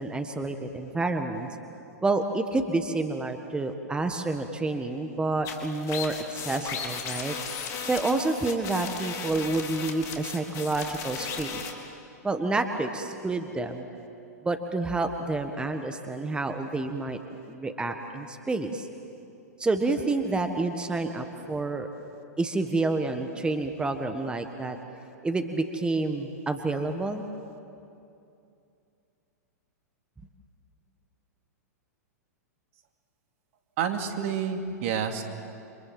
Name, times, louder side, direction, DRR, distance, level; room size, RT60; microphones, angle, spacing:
voice 1, 0.0-1.5 2.0-7.3 7.8-11.6 12.2-13.9 14.4-17.2 17.5-18.9 19.6-21.9 22.4-24.8 25.2-27.2, right 2 dB, 10° right, 6 dB, 1.6 m, -29 dB
sound 1, 5.5-11.7, left 6 dB, 35° left, 3.5 m, -36 dB
voice 2, 33.8-35.2, right 7 dB, 50° right, 5 dB, 2.6 m, -29 dB
29.5 x 25.5 x 7.9 m, 2.6 s
figure-of-eight pair, 105°, 9 cm